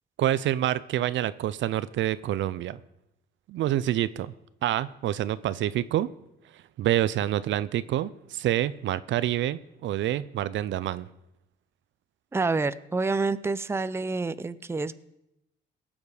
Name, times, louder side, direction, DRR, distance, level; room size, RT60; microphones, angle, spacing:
voice 1, 0.2-2.8 3.5-4.3 4.6-6.1 6.8-11.1, right 12 dB, 70° right, 17 dB, 0.5 m, -27 dB
voice 2, 12.3-14.9, right 3 dB, 15° right, 15 dB, 0.5 m, -28 dB
17.5 x 7.1 x 4.9 m, 0.85 s
cardioid pair, 90°, 20 cm